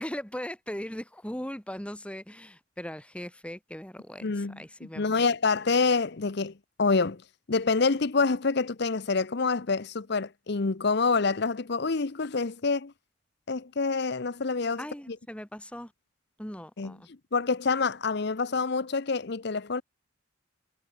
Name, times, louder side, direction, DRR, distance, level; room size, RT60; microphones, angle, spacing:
voice 1, 0.0-5.2 14.8-15.9 16.4-17.1, equal, 5° left, 1.8 m, -39 dB
voice 2, 4.2-4.6 5.0-6.5 6.8-7.2 7.5-12.9 13.5-14.8 16.8-16.9 17.3-19.8, left 4 dB, 55° left, 0.8 m, -26 dB
head